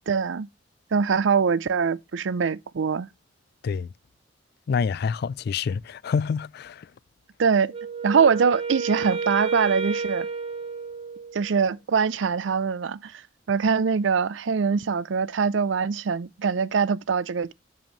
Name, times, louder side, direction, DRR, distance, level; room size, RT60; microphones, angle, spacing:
voice 1, 0.1-0.5 0.9-3.1 7.4-7.7 8.0-10.3 11.3-13.2 13.5-17.5, right 5 dB, 75° right, 0.5 m, -23 dB
voice 2, 4.7-6.9, left 6 dB, 55° left, 0.3 m, -27 dB
Wind instrument woodwind instrument, 7.7-11.6, right 5 dB, 30° right, 0.7 m, -31 dB
7.6 x 7.2 x 3.1 m
head